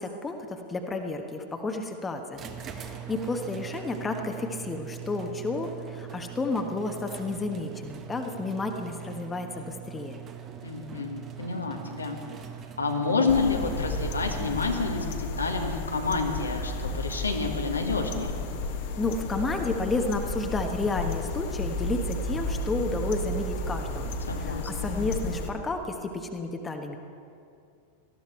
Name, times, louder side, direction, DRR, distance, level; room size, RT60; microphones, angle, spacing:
voice 1, 0.0-10.2 19.0-24.1 24.4-27.0, left 3 dB, 15° left, 4 dB, 1.3 m, -31 dB
sound 1, 2.3-15.1, right 10 dB, 30° right, 1.2 m, -42 dB
voice 2, 10.6-12.2 12.8-18.4 24.2-25.0, left 4 dB, 75° left, 3 dB, 1.6 m, -29 dB
sound 2, 13.3-25.5, left 2 dB, 50° left, 1.5 m, -32 dB
18.5 x 14.0 x 4.5 m, 2.5 s
figure-of-eight pair, 90°, 0 cm